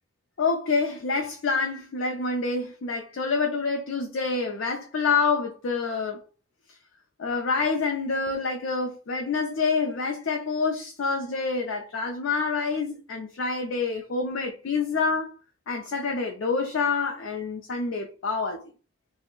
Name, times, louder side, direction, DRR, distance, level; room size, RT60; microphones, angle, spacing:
voice 1, 0.4-6.2 7.2-15.3 15.7-18.6, left 4 dB, 70° left, 0.4 m, -27 dB
2.5 x 2.1 x 3.7 m
head